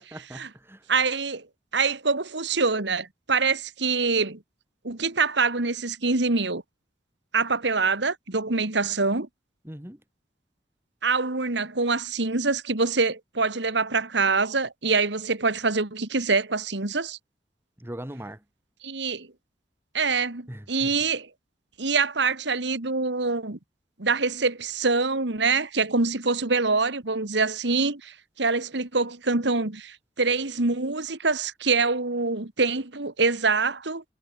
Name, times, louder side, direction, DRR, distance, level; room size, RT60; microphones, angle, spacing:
voice 1, 0.0-0.9 9.6-10.0 17.8-18.4 20.5-21.0, right 1 dB, 15° right, 2.0 m, -40 dB
voice 2, 0.9-1.4 1.7-4.4 4.8-6.6 7.3-9.3 11.0-17.2 18.8-19.3 19.9-21.3 21.8-23.6 24.0-34.0, right 4 dB, 70° right, 2.0 m, -25 dB
head